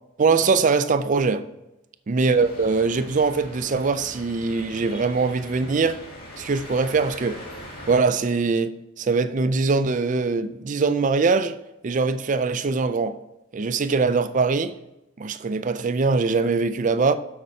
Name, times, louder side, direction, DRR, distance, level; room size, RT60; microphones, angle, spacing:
voice 1, 0.2-1.5 2.1-6.0 6.4-7.4 7.9-11.6 11.8-13.2 13.5-14.8 15.2-17.2, right 4 dB, 35° right, 0.4 m, -22 dB
sound 1, 2.3-8.0, left 1 dB, 45° left, 2.2 m, -41 dB
6.7 x 6.5 x 4.4 m
head